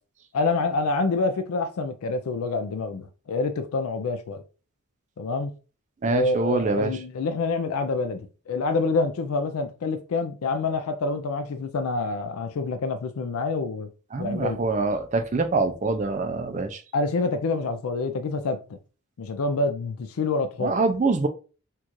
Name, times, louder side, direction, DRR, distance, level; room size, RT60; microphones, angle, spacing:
voice 1, 0.3-4.4 5.2-5.5 6.1-13.9 14.2-14.6 16.9-18.8 19.2-20.7, left 3 dB, 75° left, 0.4 m, -27 dB
voice 2, 6.0-6.9 14.1-16.8 20.6-21.3, right 3 dB, 30° right, 0.4 m, -25 dB
4.4 x 2.4 x 2.9 m
head